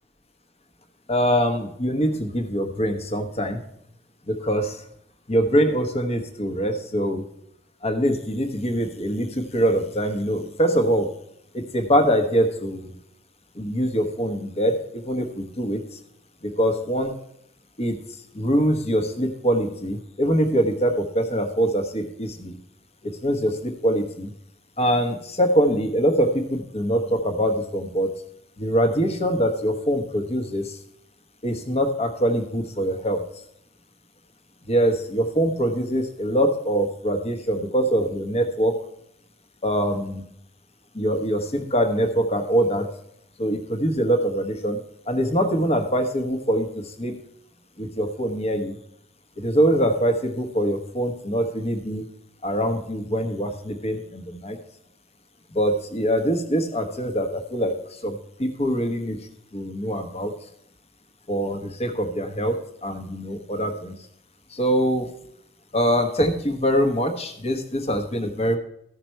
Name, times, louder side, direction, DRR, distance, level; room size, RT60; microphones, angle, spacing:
voice 1, 1.1-3.6 4.3-4.8 5.3-7.3 7.8-11.1 11.5-12.9 13.5-15.8 16.4-17.1 17.8-22.6 23.0-24.3 24.8-28.2 28.6-30.8 31.4-33.2 34.7-38.8 39.6-40.2 40.9-42.9 43.4-44.8 45.1-47.2 47.8-48.8 49.4-52.1 52.4-54.6 55.5-59.2 59.5-60.3 61.3-64.0 64.5-65.1 65.7-68.6, equal, 35° left, 6 dB, 1.1 m, -23 dB
14.5 x 5.9 x 4.4 m, 0.72 s
head